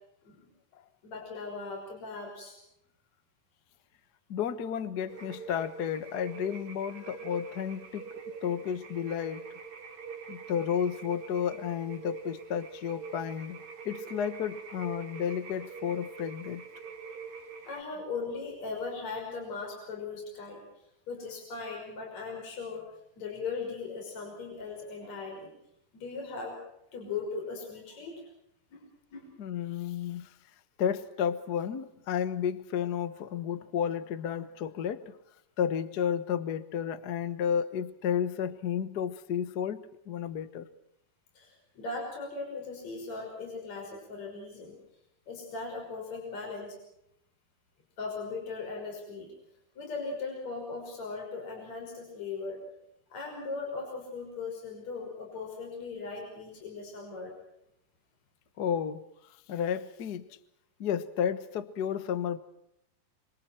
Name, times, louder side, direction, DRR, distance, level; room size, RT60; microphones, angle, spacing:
voice 1, 1.0-2.6 17.7-20.6 21.1-22.9 23.2-25.5 25.9-26.6 26.9-28.2 28.7-29.3 41.4-44.8 45.3-46.8 48.0-49.3 49.8-52.6 53.1-57.3, left 4 dB, 50° left, 1 dB, 6.9 m, -38 dB
voice 2, 4.3-8.1 8.4-9.5 10.3-16.6 29.4-30.3 30.8-35.2 35.6-40.7 58.6-59.0 59.5-60.4 60.8-62.4, left 8 dB, 75° left, 12 dB, 0.9 m, -32 dB
sound 1, 5.1-17.8, right 6 dB, 85° right, 5.2 m, -45 dB
27.0 x 26.0 x 4.5 m, 0.79 s
omnidirectional pair, 4.0 m